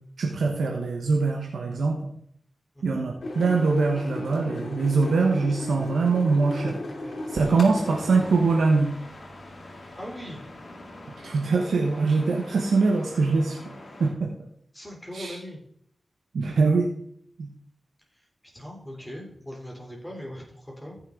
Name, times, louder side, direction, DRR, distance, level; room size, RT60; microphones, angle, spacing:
voice 1, 0.2-2.1 2.8-6.8 7.3-8.9 11.2-13.6 14.0-14.3 15.1-15.4 16.3-16.9 17.4-17.5, right 4 dB, 85° right, 0 dB, 1.3 m, -23 dB
voice 2, 2.8-3.2 3.9-4.1 9.9-10.4 14.7-15.6 18.1-18.2 18.5-21.0, equal, 15° left, -1 dB, 3.5 m, -40 dB
sound 1, 3.2-8.7, left 1 dB, 70° left, 2.9 m, -36 dB
sound 2, 7.3-14.1, left 1 dB, 55° left, 2.9 m, -45 dB
14.5 x 6.4 x 3.9 m, 0.67 s
cardioid pair, 40°, 0 cm